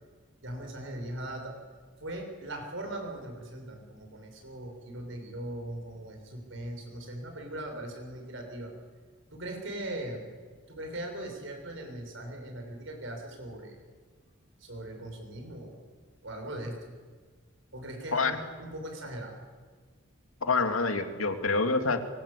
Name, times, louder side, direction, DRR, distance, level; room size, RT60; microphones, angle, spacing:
voice 1, 0.4-1.5 2.0-8.7 9.3-10.3 10.7-13.8 14.6-15.8 16.2-16.7 17.7-19.4, right 1 dB, 65° right, 3 dB, 6.8 m, -39 dB
voice 2, 20.4-22.0, left 3 dB, 90° left, 6 dB, 2.6 m, -27 dB
24.5 x 24.5 x 8.6 m, 1.5 s
head